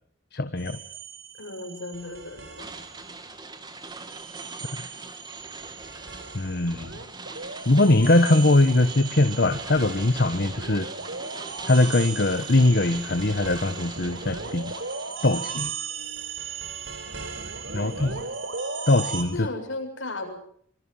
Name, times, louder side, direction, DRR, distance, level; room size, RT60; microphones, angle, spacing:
voice 1, 0.3-0.8 6.3-6.9 7.6-10.9 11.7-14.7 15.2-15.7 17.7-18.2 18.9-19.5, left 2 dB, 55° left, 8 dB, 1.4 m, -21 dB
sound 1, 0.6-3.3 3.6-19.2, right 5 dB, 65° right, 4.8 m, -37 dB
voice 2, 1.4-2.7 17.7-18.2 19.3-20.4, left 2 dB, 75° left, 4 dB, 7.2 m, -35 dB
sound 2, 2.6-15.7, right 3 dB, 20° right, 2.2 m, -42 dB
26.5 x 24.5 x 5.8 m, 0.63 s
head